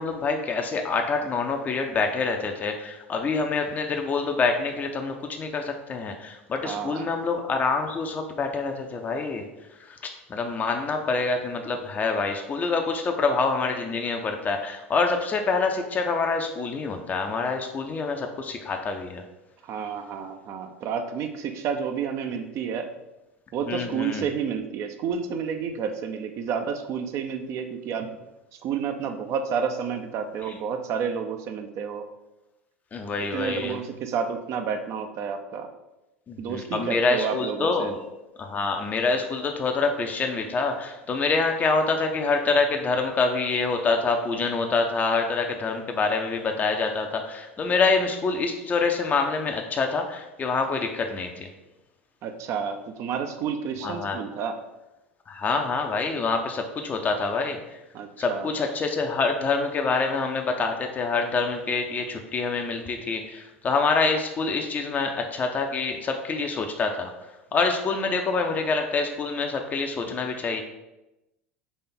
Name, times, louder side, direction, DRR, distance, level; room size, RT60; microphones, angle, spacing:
voice 1, 0.0-9.4 9.8-10.0 10.3-19.2 23.6-24.3 32.9-33.8 36.3-38.0 38.4-51.5 53.8-54.2 55.3-57.6 58.2-67.1 67.5-70.6, left 4 dB, 25° left, 4 dB, 0.5 m, -26 dB
voice 2, 6.6-7.2 19.6-22.9 23.5-28.1 28.6-32.0 33.2-35.7 36.4-37.9 52.2-54.6 57.9-58.5, right 6 dB, 45° right, 6 dB, 0.5 m, -30 dB
4.2 x 3.3 x 3.8 m, 0.96 s
hypercardioid pair, 85°, 7 cm